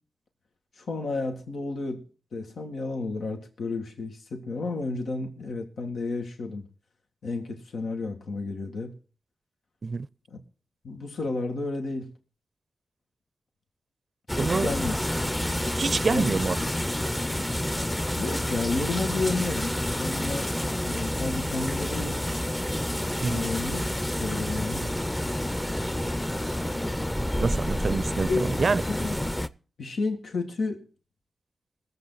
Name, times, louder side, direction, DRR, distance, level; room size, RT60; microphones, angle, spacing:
voice 1, 0.8-2.1 2.3-6.7 7.2-8.9 10.3-10.4 10.8-12.1 14.4-15.0 16.1-16.3 18.2-20.5 20.8-22.2 23.2-23.8 24.2-24.9 28.3-29.2 29.8-30.9, left 3 dB, 90° left, 1.9 m, -31 dB
sound 1, 14.3-29.5, left 1 dB, 10° left, 0.7 m, -29 dB
voice 2, 14.4-14.7 15.8-16.6 23.2-23.5 27.4-28.8, right 4 dB, 55° right, 0.5 m, -26 dB
21.0 x 7.7 x 4.0 m
cardioid pair, 70°, 0 cm